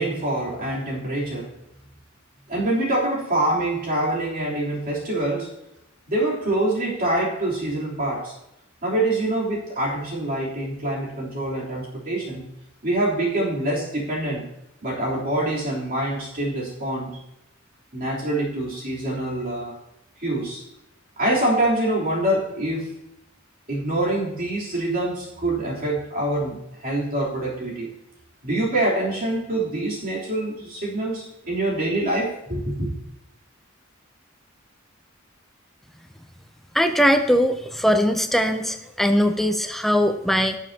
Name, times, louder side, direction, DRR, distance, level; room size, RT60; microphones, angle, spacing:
voice 1, 0.0-1.6 2.5-5.5 6.1-8.4 8.8-12.5 12.8-14.5 14.8-17.2 17.9-19.8 20.2-20.6 21.2-22.9 23.7-27.9 28.4-32.9, right 1 dB, 45° right, -5 dB, 3.3 m, -25 dB
voice 2, 36.7-40.6, equal, ahead, 7 dB, 0.5 m, -20 dB
18.5 x 7.0 x 2.8 m, 0.85 s
head